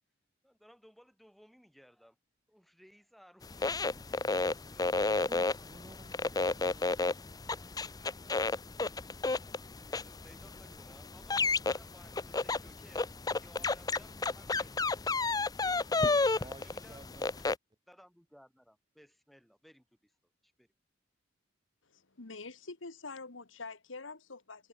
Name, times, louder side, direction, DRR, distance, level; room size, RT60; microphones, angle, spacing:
voice 1, 0.4-2.2 2.5-4.9 9.9-15.2 15.6-17.1 17.9-20.2 20.4-20.7, equal, ahead, 4.1 m, -60 dB
sound 1, 3.4-17.5, left 3 dB, 20° left, 0.5 m, -32 dB
voice 2, 5.3-7.4 16.4-17.4, right 1 dB, 20° right, 2.9 m, -54 dB
voice 3, 21.8-24.7, left 3 dB, 80° left, 1.8 m, -46 dB
head